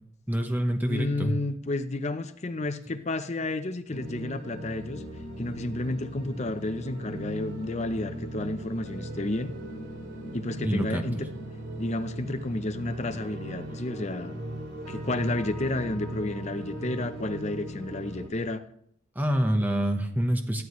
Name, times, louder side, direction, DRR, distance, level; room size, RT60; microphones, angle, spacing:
voice 1, 0.3-1.3 10.6-11.2 19.1-20.6, equal, 10° right, 4 dB, 1.0 m, -26 dB
voice 2, 0.9-5.0 5.4-9.5 10.3-11.3 11.8-14.3 14.9-18.6, left 2 dB, 35° left, 9 dB, 0.6 m, -31 dB
sound 1, 3.9-18.3, right 1 dB, 55° right, 2.6 m, -38 dB
14.5 x 12.0 x 3.1 m, 0.68 s
head